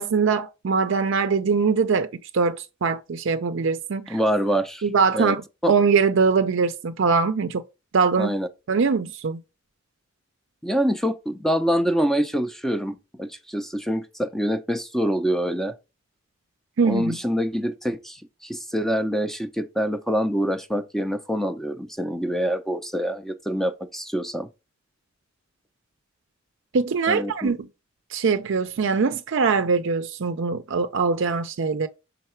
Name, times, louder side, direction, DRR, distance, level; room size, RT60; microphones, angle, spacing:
voice 1, 0.0-4.2 4.8-5.4 5.7-7.6 7.9-8.3 8.7-9.4 16.8-17.2 26.7-27.6 28.1-31.9, right 5 dB, 65° right, 0.5 m, -22 dB
voice 2, 4.1-4.9 5.1-5.4 5.6-5.7 8.2-8.5 10.6-15.7 16.8-24.5 27.1-27.6, equal, ahead, 0.5 m, -25 dB
5.7 x 3.9 x 4.3 m
head